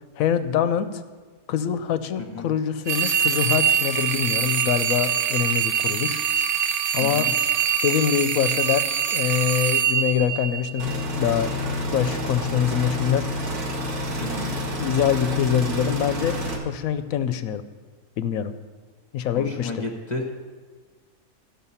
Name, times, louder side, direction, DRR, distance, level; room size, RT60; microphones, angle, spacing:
voice 1, 0.2-1.0 1.5-6.2 6.9-7.3 7.8-8.8 9.1-10.9 11.2-11.5 11.9-13.2 14.4-14.5 14.8-16.3 16.6-17.6 18.2-18.5 19.1-19.8, left 9 dB, 75° left, 11 dB, 1.0 m, -24 dB
sound 1, 2.9-11.0, right 9 dB, 65° right, 0.7 m, -24 dB
voice 2, 7.0-7.3 14.2-14.6 19.3-20.3, left 3 dB, 35° left, 2 dB, 1.0 m, -32 dB
sound 2, 10.8-16.6, equal, 90° right, 1.9 m, -29 dB
14.0 x 5.8 x 5.6 m, 1.5 s
omnidirectional pair, 1.6 m